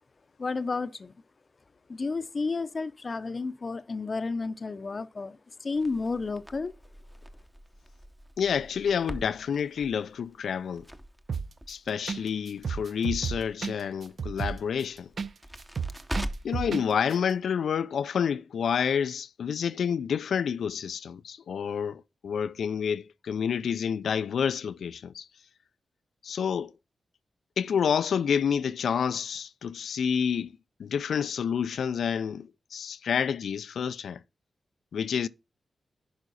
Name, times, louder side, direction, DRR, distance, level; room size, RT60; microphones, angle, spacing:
voice 1, 0.4-1.1 1.9-6.7, left 4 dB, 40° left, 0.6 m, -32 dB
Crackle, 5.7-16.7, equal, 5° right, 0.8 m, -43 dB
voice 2, 8.4-10.9 11.7-15.1 16.4-25.3 26.2-26.7 27.6-30.5 30.8-34.2 34.9-35.3, left 7 dB, 85° left, 0.4 m, -29 dB
sound 1, 11.3-11.7 12.1-12.2 12.5-15.3 15.6-16.8 17.1-17.2, right 6 dB, 60° right, 0.6 m, -32 dB
11.0 x 5.1 x 4.0 m
wide cardioid pair, 90°, 0 cm